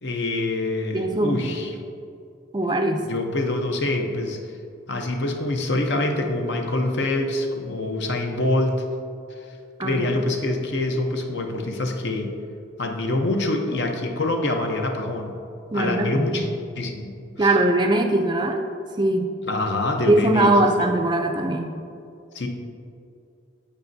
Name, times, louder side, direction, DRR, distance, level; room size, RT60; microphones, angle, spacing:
voice 1, 0.0-1.7 3.1-4.4 4.9-8.8 9.8-12.4 12.8-15.4 15.7-16.5 16.7-17.5 19.4-20.9 22.3-22.5, left 2 dB, 60° left, 3 dB, 0.8 m, -25 dB
voice 2, 0.9-1.6 2.5-3.1 9.8-10.2 15.7-16.5 17.4-18.6 19.0-19.3 20.1-21.7, right 2 dB, 20° right, 4 dB, 0.4 m, -21 dB
15.0 x 5.1 x 2.7 m, 2.6 s
head